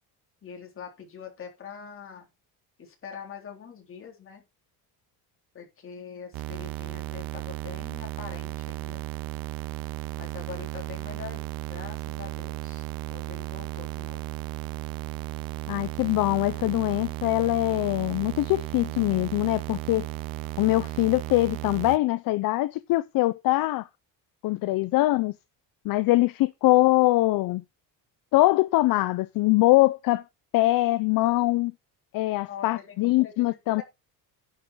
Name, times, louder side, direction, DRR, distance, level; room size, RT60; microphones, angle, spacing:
voice 1, 0.4-2.3 2.8-4.4 5.5-9.0 10.2-11.4 11.7-12.8 13.1-14.2 32.5-33.0 33.2-33.5 33.8-33.9, left 7 dB, 35° left, 3.7 m, -43 dB
sound 1, 6.3-22.0, right 17 dB, 65° right, 0.7 m, -35 dB
voice 2, 15.7-20.1 20.6-23.9 24.4-25.3 25.8-27.6 28.3-30.2 30.5-31.7 32.1-33.8, left 19 dB, 65° left, 0.6 m, -23 dB
10.5 x 6.4 x 5.5 m
cardioid pair, 155°, 38 cm